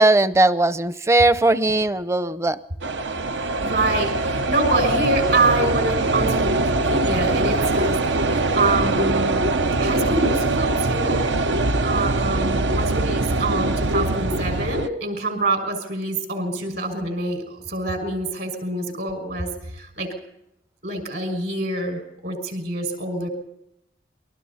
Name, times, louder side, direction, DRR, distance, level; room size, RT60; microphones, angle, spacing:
voice 1, 0.0-2.6, right 2 dB, 15° right, 13 dB, 0.6 m, -18 dB
sound 1, 2.8-14.9, right 2 dB, 80° right, 0.9 m, -22 dB
voice 2, 3.6-9.4 9.8-11.2 11.8-19.5 19.8-20.1 20.8-23.3, right 2 dB, 60° right, 6 dB, 6.1 m, -26 dB
28.0 x 21.5 x 4.3 m, 0.81 s
head